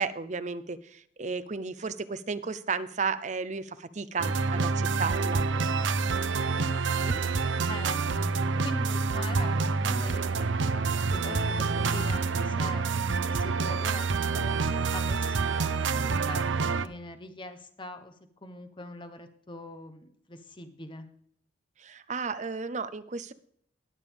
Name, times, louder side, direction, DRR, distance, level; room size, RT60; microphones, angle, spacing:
voice 1, 0.0-5.5 21.8-23.3, right 5 dB, 40° right, 13 dB, 0.6 m, -33 dB
sound 1, 4.2-16.9, right 4 dB, 85° right, 0.6 m, -27 dB
voice 2, 6.8-14.1 14.3-14.5 14.9-16.5 16.8-18.1 18.4-21.1, left 2 dB, 25° left, 8 dB, 1.1 m, -44 dB
20.0 x 6.8 x 3.6 m, 0.66 s
head